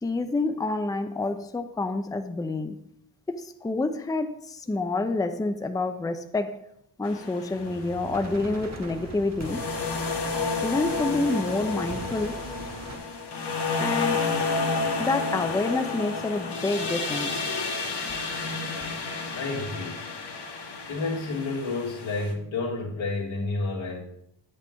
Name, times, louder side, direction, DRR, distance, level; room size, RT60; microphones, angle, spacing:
voice 1, 0.0-2.8 3.3-6.6 7.0-9.6 10.6-12.4 13.8-14.3 15.0-17.5, left 2 dB, 10° left, 0.6 m, -28 dB
sound 1, 7.0-8.5 9.4-22.3, left 4 dB, 60° left, 1.4 m, -31 dB
sound 2, 7.5-13.0, right 3 dB, 35° right, 1.3 m, -41 dB
voice 2, 19.3-20.1 20.9-24.1, left 3 dB, 90° left, 2.1 m, -30 dB
7.6 x 7.5 x 3.6 m
cardioid pair, 65°, 45 cm